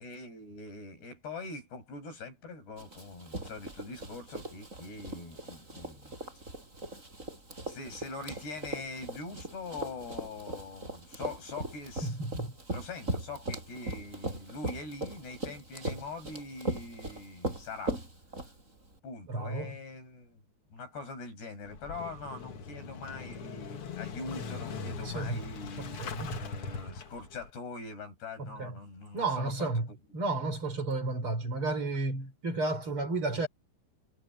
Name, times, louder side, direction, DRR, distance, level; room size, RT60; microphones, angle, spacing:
voice 1, 0.0-6.3 7.7-12.2 12.7-18.0 19.0-20.4 20.7-26.0 26.3-29.8, left 3 dB, 75° left, 10.0 m, -43 dB
Run, 2.8-18.9, right 1 dB, 15° right, 6.8 m, -39 dB
voice 2, 12.0-12.5 19.3-19.7 25.0-25.4 25.8-26.4 28.4-28.7 29.1-29.9 30.1-33.5, right 3 dB, 30° right, 4.1 m, -32 dB
Motorcycle / Engine starting, 21.6-27.5, left 5 dB, 50° left, 1.8 m, -40 dB
omnidirectional pair, 4.8 m